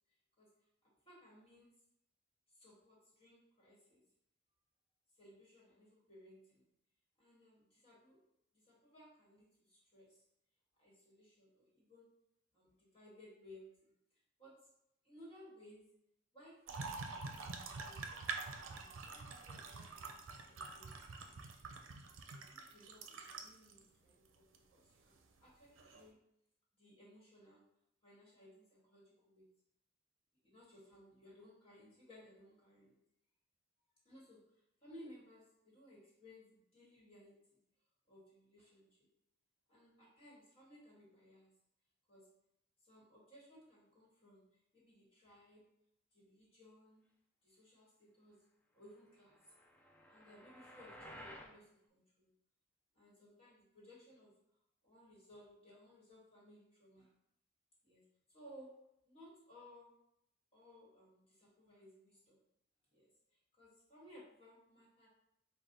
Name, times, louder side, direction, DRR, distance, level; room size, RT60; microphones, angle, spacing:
voice 1, 0.8-1.7 2.5-4.0 5.2-6.6 7.2-8.2 8.5-10.2 10.8-12.1 12.5-13.9 14.4-14.6 15.0-15.8 16.3-18.2 18.7-20.2 20.4-20.9 22.3-26.2 26.8-27.7 28.0-29.4 30.4-33.0 34.0-34.4 34.8-37.6 38.1-39.1 39.7-41.5 42.1-42.3 42.8-44.4 44.7-45.7 46.1-47.1 47.4-48.4 48.7-49.4 50.1-52.3 52.9-54.3 54.8-57.1 57.8-58.7 59.0-59.9 60.5-62.4 62.9-63.1 63.5-65.1, equal, 30° left, -6 dB, 1.4 m, -61 dB
sound 1, 16.7-23.8 24.5-24.6 25.8-26.0, right 4 dB, 85° right, 0.5 m, -46 dB
sound 2, 49.3-51.6, equal, 5° left, 0.3 m, -54 dB
4.8 x 2.2 x 3.9 m, 0.78 s
head